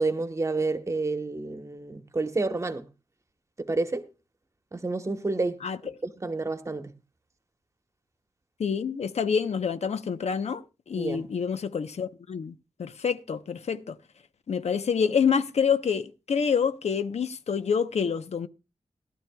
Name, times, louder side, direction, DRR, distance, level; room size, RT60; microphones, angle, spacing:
voice 1, 0.0-2.9 3.6-4.0 4.7-6.9 10.9-11.2, right 3 dB, 25° right, 1.1 m, -29 dB
voice 2, 8.6-14.0 14.5-18.5, left 6 dB, 70° left, 0.8 m, -27 dB
18.0 x 12.0 x 2.3 m
wide cardioid pair, 130°, 11 cm